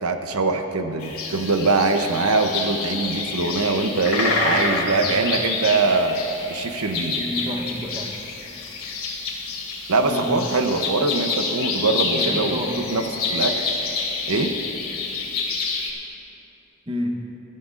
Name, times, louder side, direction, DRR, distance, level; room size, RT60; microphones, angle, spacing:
voice 1, 0.0-6.2 6.5-7.2 9.9-12.6 12.9-13.0 13.3-13.6 14.3-14.5, right 3 dB, 90° right, 6 dB, 0.8 m, -22 dB
sound 1, 1.0-15.9, left 4 dB, 85° left, 2.7 m, -28 dB
voice 2, 4.1-4.8 5.1-5.2 7.1-8.2 10.0-10.3 12.1-12.8 16.9-17.2, equal, 25° right, 1 dB, 1.0 m, -29 dB
21.0 x 13.5 x 2.5 m, 3.0 s
head